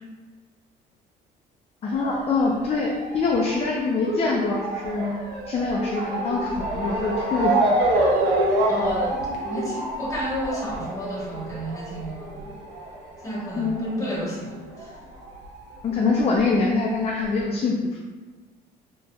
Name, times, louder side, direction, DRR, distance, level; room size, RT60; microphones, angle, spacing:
voice 1, 1.8-5.1 5.5-7.7 13.6-14.1 15.8-17.7, left 4 dB, 35° left, -1 dB, 0.5 m, -24 dB
Motor vehicle (road) / Siren, 1.9-14.9 15.2-16.4 17.0-17.1 17.4-17.5, right 1 dB, 90° right, 0.9 m, -27 dB
voice 2, 8.7-12.5 13.2-14.9, equal, 20° left, -5 dB, 1.4 m, -32 dB
4.0 x 2.9 x 2.4 m, 1.3 s
cardioid pair, 110°, 17 cm